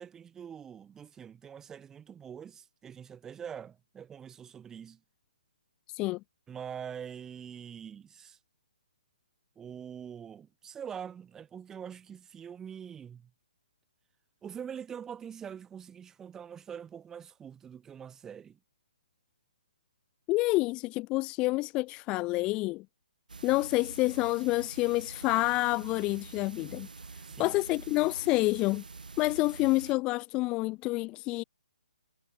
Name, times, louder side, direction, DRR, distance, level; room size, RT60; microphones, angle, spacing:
voice 1, 0.0-5.0 6.5-8.4 9.6-13.3 14.4-18.6 27.0-27.6, right 8 dB, 10° right, 2.9 m, -44 dB
voice 2, 5.9-6.2 20.3-22.8 23.4-26.9 27.4-28.8 29.2-31.4, left 21 dB, 20° left, 0.7 m, -28 dB
sound 1, 23.3-29.9, right 4 dB, 65° right, 6.7 m, -46 dB
figure-of-eight pair, 135°, 5 cm